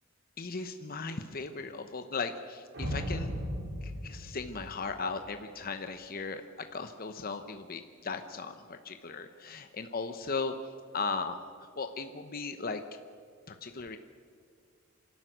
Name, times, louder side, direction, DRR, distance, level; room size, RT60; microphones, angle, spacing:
voice 1, 0.4-3.3 3.8-10.5 10.9-11.3 11.8-12.8 13.5-14.0, left 4 dB, 45° left, 7 dB, 0.9 m, -37 dB
sound 1, 2.7-5.2, equal, 65° right, 5.6 m, -36 dB
27.0 x 12.5 x 9.3 m, 2.2 s
head